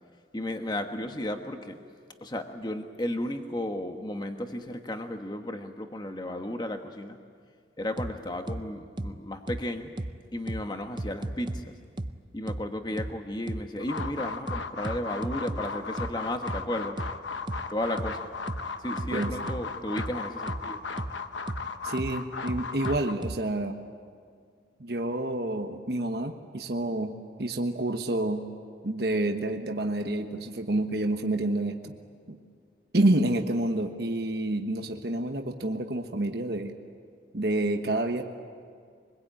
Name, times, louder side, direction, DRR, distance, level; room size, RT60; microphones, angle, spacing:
voice 1, 0.3-1.8 2.2-7.2 7.8-9.9 10.3-11.7 12.3-17.0 17.7-18.3 18.8-20.8, left 1 dB, 25° left, 6 dB, 1.3 m, -34 dB
sound 1, 8.0-8.1 8.5-8.6 9.0-9.1 9.5-9.6 10.0-10.1 10.5-10.6 11.0-11.6 12.0-12.1 12.5-12.6 13.0-13.1 13.5-13.6 14.0-14.1 14.5-15.6 16.0-16.1 16.5-16.6 17.0-17.1 17.5-17.6 18.0-18.1 18.5-18.6 19.0-19.6 20.0-20.1 20.5-20.6 21.0-21.1 21.5-21.6 22.0-22.1 22.5-23.4, right 1 dB, 25° right, 0.6 m, -33 dB
sound 2, 13.8-23.1, left 4 dB, 90° left, 1.1 m, -36 dB
voice 2, 19.1-19.5 21.8-23.8 24.8-28.5 28.8-31.9 32.9-36.7 37.3-38.2, right 1 dB, 55° right, 4 dB, 1.2 m, -28 dB
25.0 x 21.0 x 8.9 m, 2.1 s
head